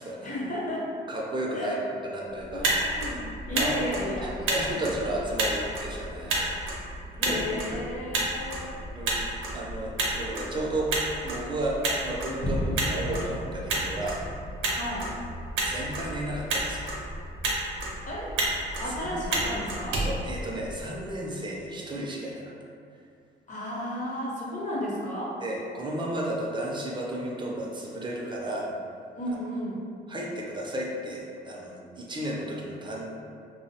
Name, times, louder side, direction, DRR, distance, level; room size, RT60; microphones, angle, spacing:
voice 1, 0.2-0.9 1.5-1.8 2.5-4.8 6.2-6.3 7.2-8.8 14.7-15.1 18.1-18.4 18.8-20.0 23.5-25.4 29.1-29.8, left 1 dB, 40° left, -5 dB, 0.8 m, -33 dB
voice 2, 1.1-2.7 3.5-3.8 4.2-6.7 7.2-7.4 7.7-7.8 8.9-9.2 9.5-10.9 11.2-14.2 15.6-16.9 18.8-19.2 20.0-22.5 25.4-28.7 30.1-33.1, right 1 dB, 25° right, -3 dB, 0.4 m, -33 dB
Motor vehicle (road), 2.4-21.0, right 2 dB, 85° right, 0.6 m, -31 dB
sound 1, 12.4-16.4, equal, 70° left, 0.8 m, -34 dB
2.5 x 2.0 x 2.7 m, 2.3 s
cardioid pair, 90°, 20 cm